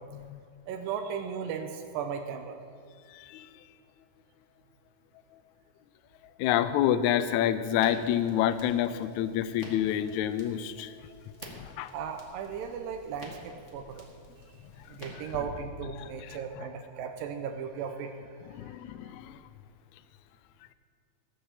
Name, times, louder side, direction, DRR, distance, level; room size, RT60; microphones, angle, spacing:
voice 1, 0.7-2.6 11.9-14.1 14.9-18.2 18.6-18.7, right 7 dB, 85° right, 5 dB, 2.4 m, -36 dB
voice 2, 3.1-3.5 6.4-10.9 11.5-11.9 16.0-16.1 18.5-19.4, left 11 dB, 90° left, 13 dB, 1.6 m, -28 dB
Crackle, 7.8-16.1, left 1 dB, 30° left, 1.5 m, -50 dB
16.5 x 6.9 x 7.3 m, 2.1 s
omnidirectional pair, 4.0 m